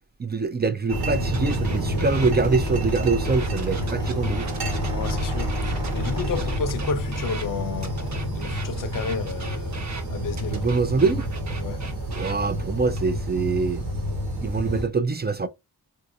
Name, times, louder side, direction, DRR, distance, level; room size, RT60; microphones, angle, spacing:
voice 1, 0.2-4.5 10.5-11.3 12.2-13.8 14.4-15.5, right 4 dB, 25° right, 0.4 m, -24 dB
sound 1, 0.9-14.9, equal, 80° right, 1.4 m, -28 dB
sound 2, 1.3-2.4 2.9-7.5 7.8-10.0 10.3-12.4 12.9-13.2, right 4 dB, 50° right, 0.9 m, -39 dB
Brass instrument, 2.5-6.8, right 2 dB, 10° right, 1.1 m, -44 dB
voice 2, 4.9-10.7 11.6-11.8, left 6 dB, 60° left, 0.6 m, -32 dB
3.4 x 2.7 x 2.6 m
cardioid pair, 65°, 37 cm